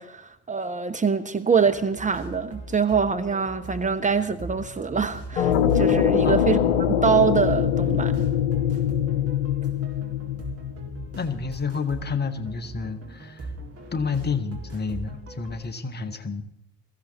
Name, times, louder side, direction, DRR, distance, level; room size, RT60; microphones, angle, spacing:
voice 1, 0.0-6.6 7.0-8.3, right 6 dB, 20° right, 1.1 m, -24 dB
sound 1, 1.6-15.7, right 2 dB, 45° right, 4.1 m, -40 dB
sound 2, 5.4-11.2, left 9 dB, 80° left, 0.7 m, -23 dB
voice 2, 6.2-6.7 11.2-13.5 13.9-16.4, left 5 dB, 30° left, 1.7 m, -30 dB
22.0 x 15.0 x 4.2 m
figure-of-eight pair, 50°, 33 cm